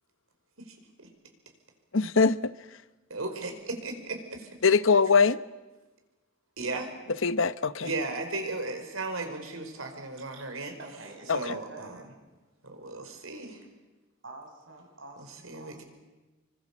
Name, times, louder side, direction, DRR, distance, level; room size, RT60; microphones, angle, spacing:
voice 1, 1.9-2.5 4.6-5.4 7.2-7.9 11.3-11.4, left 5 dB, 70° left, 15 dB, 0.9 m, -22 dB
voice 2, 3.1-4.5 6.6-6.9 7.8-10.7 11.3-11.9 12.6-13.6 15.4-15.8, right 2 dB, 85° right, 5 dB, 5.0 m, -35 dB
voice 3, 10.8-12.1 14.2-15.8, right 2 dB, 70° right, 2 dB, 6.0 m, -47 dB
27.0 x 24.0 x 7.4 m, 1.2 s
head